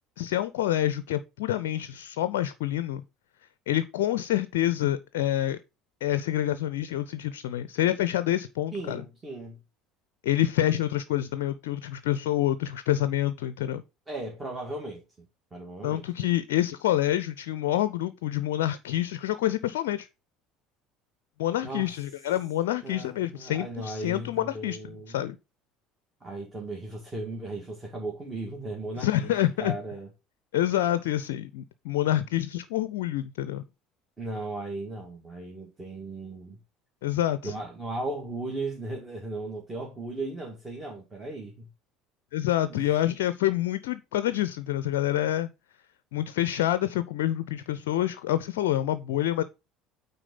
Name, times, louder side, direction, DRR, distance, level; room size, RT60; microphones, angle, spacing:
voice 1, 0.2-3.0 3.7-5.6 6.0-9.0 10.2-13.8 15.8-20.1 21.4-24.8 25.1-25.4 29.0-29.7 30.5-33.6 37.0-37.5 42.3-45.5 46.1-49.4, left 13 dB, 65° left, 0.4 m, -27 dB
voice 2, 8.7-9.6 14.1-15.0 15.5-16.0 21.6-21.9 22.8-25.2 26.2-29.3 29.6-30.1 34.2-36.6 37.4-41.7 42.7-42.9, right 2 dB, 20° right, 1.9 m, -36 dB
8.9 x 4.1 x 3.9 m
figure-of-eight pair, 60°, 0 cm